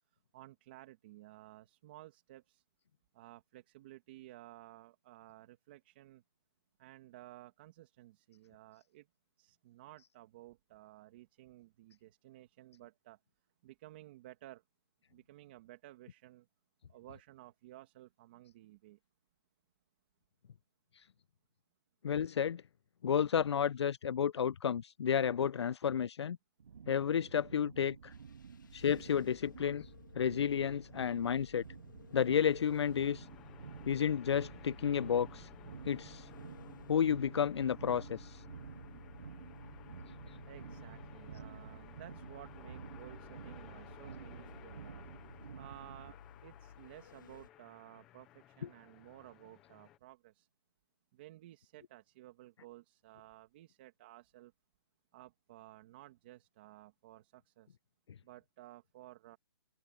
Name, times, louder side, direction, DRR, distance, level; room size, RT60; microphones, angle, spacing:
voice 1, 0.1-2.6 3.1-6.2 6.8-9.1 9.4-13.2 13.6-14.6 15.1-16.5 16.9-19.0 40.4-45.1 45.5-46.2 46.4-50.5 51.1-54.5 55.1-57.8 58.2-59.4, right 16 dB, 20° right, 2.0 m, -55 dB
voice 2, 22.0-22.6 23.0-26.4 26.9-28.1 28.7-29.9 30.1-31.6 32.1-33.3 33.8-35.5 35.9-36.3 36.9-38.4 48.6-48.7, left 8 dB, 80° left, 0.4 m, -31 dB
sound 1, 26.6-46.1, right 7 dB, 90° right, 0.5 m, -51 dB
sound 2, 28.1-47.5, left 7 dB, 45° left, 1.5 m, -57 dB
sound 3, 32.8-50.0, left 13 dB, 5° left, 0.3 m, -58 dB
hypercardioid pair, 175°, 14 cm